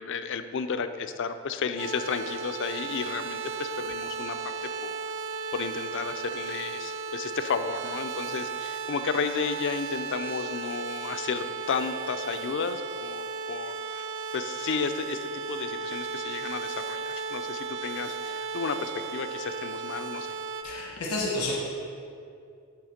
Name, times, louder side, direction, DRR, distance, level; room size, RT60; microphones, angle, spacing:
voice 1, 0.0-4.4 4.6-5.0 5.5-14.1 14.3-20.3, left 5 dB, 55° left, 10 dB, 0.4 m, -33 dB
sound 1, 1.8-20.6, right 5 dB, 55° right, 0.5 m, -35 dB
voice 2, 20.6-21.6, left 2 dB, 90° left, -2 dB, 1.1 m, -30 dB
10.5 x 3.5 x 6.4 m, 2.5 s
head